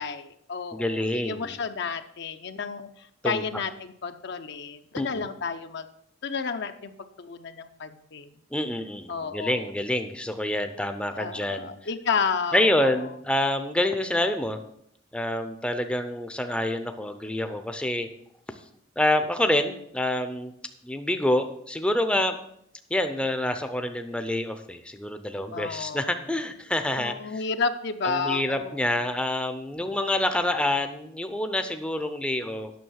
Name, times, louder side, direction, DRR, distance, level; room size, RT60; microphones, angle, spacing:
voice 1, 0.0-5.8 6.2-8.3 9.1-9.7 11.1-13.1 25.5-26.1 27.0-29.0, left 5 dB, 60° left, 9 dB, 0.6 m, -31 dB
voice 2, 0.7-1.5 3.2-3.4 4.9-5.3 8.5-11.7 12.5-14.6 15.1-18.1 19.0-20.5 20.8-22.4 22.9-27.3 28.0-32.7, left 1 dB, 5° left, 8 dB, 0.5 m, -27 dB
9.3 x 6.5 x 6.3 m, 0.71 s
head